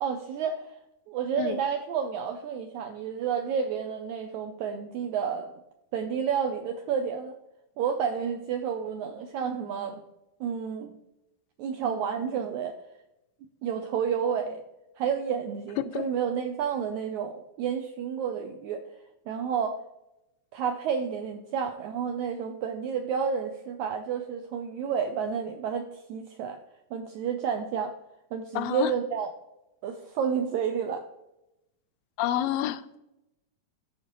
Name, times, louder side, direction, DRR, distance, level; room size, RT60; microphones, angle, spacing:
voice 1, 0.0-0.7 1.1-5.5 5.9-7.3 7.8-10.0 10.4-10.9 11.6-12.7 13.6-14.6 15.0-18.8 19.3-19.8 20.5-26.6 26.9-27.9 28.3-29.3 29.8-31.0, right 7 dB, 85° right, 5 dB, 1.7 m, -30 dB
voice 2, 28.6-28.9 32.2-33.0, left 12 dB, 85° left, 11 dB, 2.3 m, -28 dB
14.0 x 4.8 x 3.0 m, 0.89 s
omnidirectional pair, 4.0 m